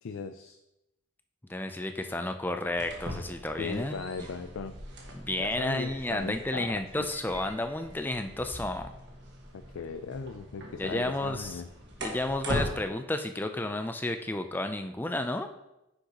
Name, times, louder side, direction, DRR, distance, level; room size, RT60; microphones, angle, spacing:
voice 1, 0.0-0.6 3.6-4.7 5.4-6.7 7.0-7.1 9.5-11.7, left 5 dB, 75° left, 9 dB, 0.4 m, -38 dB
voice 2, 1.5-3.9 4.2-4.3 5.1-8.9 10.8-11.6 12.0-15.5, left 2 dB, 10° left, 7 dB, 0.4 m, -32 dB
sound 1, 2.7-12.7, equal, 55° right, 1.6 m, -41 dB
9.6 x 6.5 x 2.9 m, 0.89 s
head